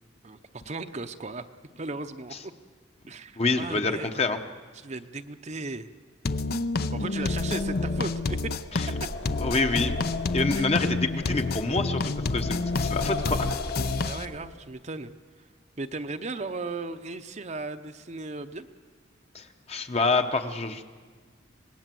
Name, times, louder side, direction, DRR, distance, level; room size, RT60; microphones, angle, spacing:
voice 1, 0.6-1.5 1.8-2.3 3.1-4.1 4.8-5.9 6.9-8.4 10.6-10.7 14.0-15.1 15.8-18.7, right 3 dB, 35° right, 8 dB, 0.8 m, -36 dB
voice 2, 3.0-4.4 8.7-8.9 9.4-10.0 10.3-13.5 19.3-20.8, left 3 dB, 35° left, 7 dB, 1.0 m, -27 dB
sound 1, 6.2-14.3, left 3 dB, 55° left, 0.7 m, -29 dB
sound 2, 7.0-14.6, left 2 dB, 85° left, 3.2 m, -36 dB
25.5 x 19.5 x 7.7 m, 1.5 s
head